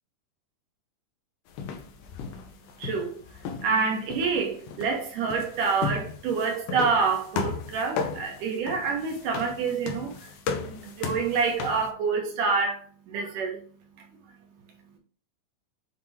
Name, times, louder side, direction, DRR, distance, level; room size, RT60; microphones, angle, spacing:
sound 1, 1.5-3.8 4.1-11.9, left 5 dB, 80° left, 2.5 m, -35 dB
voice 1, 2.8-3.2 3.6-10.2 10.7-12.8 13.1-13.6, right 5 dB, 70° right, 2.3 m, -27 dB
7.4 x 2.9 x 4.6 m
omnidirectional pair, 4.3 m